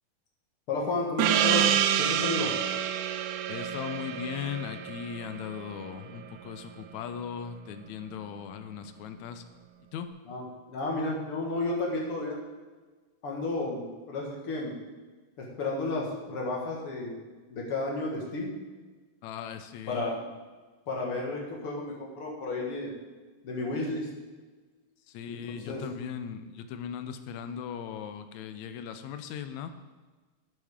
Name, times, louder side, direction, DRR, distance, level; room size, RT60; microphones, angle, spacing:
voice 1, 0.7-1.7 2.0-2.5 10.2-12.4 13.2-14.7 15.4-17.2 17.5-18.5 19.9-20.2 20.9-22.9 23.4-24.1 25.3-25.9, left 2 dB, 50° left, -2 dB, 2.3 m, -32 dB
Gong, 1.2-6.2, right 10 dB, 80° right, 1.9 m, -28 dB
voice 2, 3.5-9.4 9.9-10.1 19.2-20.0 25.1-29.7, left 8 dB, 75° left, 9 dB, 1.9 m, -38 dB
12.0 x 8.8 x 3.6 m, 1.3 s
omnidirectional pair, 3.6 m